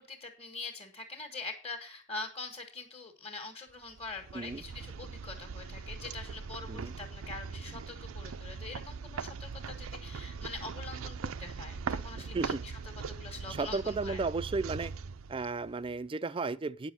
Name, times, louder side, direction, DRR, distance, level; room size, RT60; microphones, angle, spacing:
voice 1, 0.0-12.7 13.1-14.2, left 3 dB, 25° left, 1.7 m, -44 dB
sound 1, 3.9-16.0, right 5 dB, 85° right, 0.5 m, -41 dB
voice 2, 12.2-12.6 13.5-14.9 15.3-16.9, right 3 dB, 25° right, 0.4 m, -34 dB
9.8 x 6.3 x 6.2 m
head